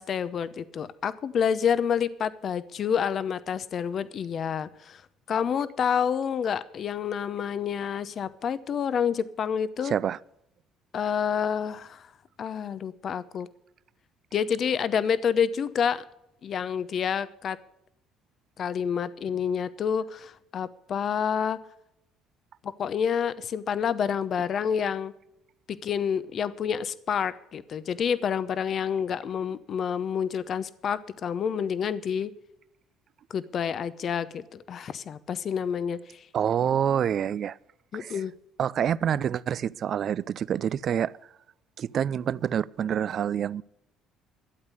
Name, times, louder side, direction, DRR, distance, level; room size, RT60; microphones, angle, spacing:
voice 1, 0.0-5.0 5.3-10.0 10.9-12.1 12.4-13.5 14.3-16.0 16.4-17.6 18.6-21.6 22.6-25.1 25.7-32.3 33.3-36.3 37.9-38.3, left 7 dB, 50° left, 0.8 m, -28 dB
voice 2, 9.8-10.2 36.3-37.6 37.9-38.2 38.6-41.1 41.8-43.6, right 9 dB, 50° right, 0.4 m, -27 dB
12.5 x 8.2 x 8.2 m
cardioid pair, 95°, 0 cm